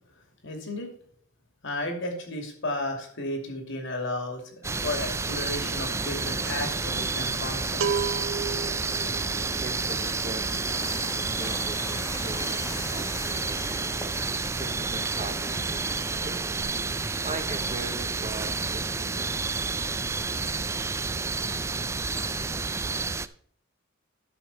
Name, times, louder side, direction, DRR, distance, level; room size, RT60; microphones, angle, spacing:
voice 1, 0.4-0.9 1.6-8.0, left 1 dB, 65° left, 5 dB, 2.5 m, -33 dB
sound 1, 4.6-23.3, right 4 dB, 15° right, 0.3 m, -30 dB
sound 2, 5.9-16.2, left 2 dB, 15° left, 1.1 m, -41 dB
sound 3, 6.1-14.4 14.7-14.9 15.2-16.0 16.3-16.6, right 6 dB, 75° right, 0.5 m, -35 dB
voice 2, 9.6-16.9 17.2-19.3, right 3 dB, 35° right, 9 dB, 0.9 m, -41 dB
11.0 x 6.5 x 4.2 m, 0.62 s
head